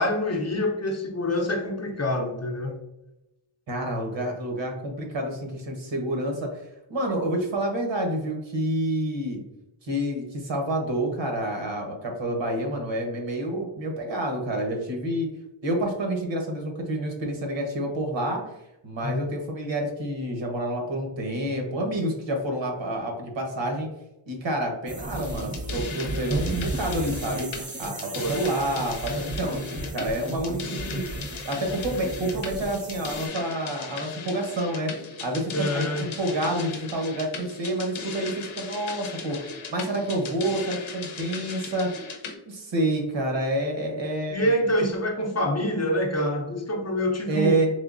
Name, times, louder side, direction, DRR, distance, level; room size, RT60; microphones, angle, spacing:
voice 1, 0.0-2.8 19.0-19.2 28.2-28.4 35.5-36.1 44.3-47.6, left 1 dB, 35° left, 1 dB, 0.6 m, -26 dB
voice 2, 3.7-6.5 6.9-9.4 9.8-15.3 15.6-18.4 18.8-23.9 24.3-27.5 27.8-31.0 31.4-34.9 35.2-41.9 42.5-44.5 47.3-47.7, right 1 dB, 65° right, 2 dB, 1.0 m, -28 dB
sound 1, 24.9-33.3, right 2 dB, 20° right, 0.3 m, -34 dB
sound 2, 25.2-42.4, left 5 dB, 75° left, 0.7 m, -38 dB
3.6 x 3.1 x 2.5 m, 0.92 s
wide cardioid pair, 120°, 47 cm